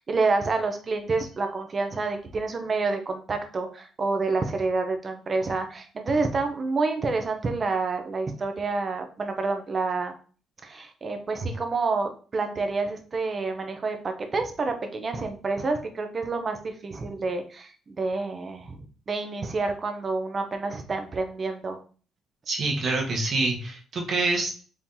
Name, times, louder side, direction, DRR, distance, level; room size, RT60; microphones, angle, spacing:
voice 1, 0.0-10.1 10.6-18.8 19.1-21.8, right 3 dB, 30° right, 6 dB, 0.6 m, -28 dB
voice 2, 22.5-24.6, right 3 dB, 45° right, 0 dB, 1.2 m, -26 dB
4.4 x 2.8 x 3.7 m, 0.39 s
cardioid pair, 150°, 0 cm